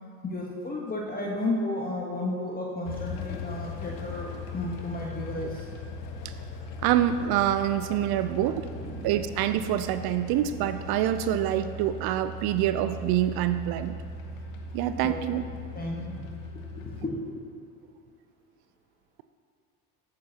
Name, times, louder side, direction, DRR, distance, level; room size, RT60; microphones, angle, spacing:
voice 1, 0.2-5.8 8.8-9.1 14.8-15.1 15.7-16.3 16.8-17.4, left 1 dB, 20° left, -2 dB, 1.2 m, -33 dB
sound 1, 2.9-17.0, left 3 dB, 70° left, 1.3 m, -39 dB
voice 2, 6.8-8.7 9.0-14.0 14.7-15.4, right 11 dB, 55° right, 11 dB, 0.5 m, -26 dB
14.0 x 8.9 x 2.9 m, 2.4 s
hypercardioid pair, 75°, 47 cm